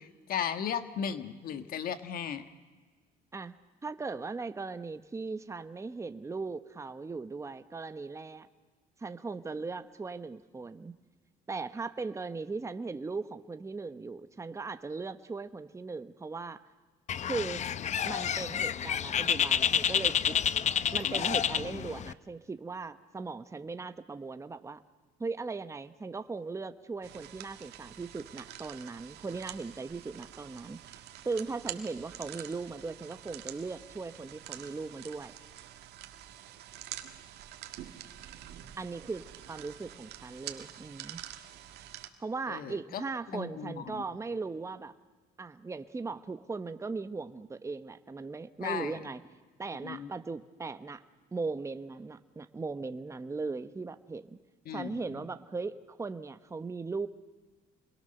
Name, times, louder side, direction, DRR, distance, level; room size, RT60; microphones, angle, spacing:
voice 1, 0.0-2.4 42.5-43.0 43.3-44.0 48.6-48.9 49.8-50.1 54.6-55.1, left 8 dB, 60° left, 10 dB, 1.5 m, -36 dB
voice 2, 3.8-8.5 9.0-10.9 11.5-16.6 17.2-17.6 18.1-20.4 20.9-24.8 25.2-35.3 38.8-41.2 42.2-44.9 45.4-49.2 49.6-51.0 51.3-54.4 54.7-57.1, right 4 dB, 15° right, 10 dB, 1.0 m, -38 dB
Bird, 17.1-22.1, left 8 dB, 45° left, 0.7 m, -29 dB
sound 1, 27.0-42.1, right 12 dB, 80° right, 1.8 m, -47 dB
27.5 x 22.0 x 6.7 m, 1.4 s
cardioid pair, 110°, 17 cm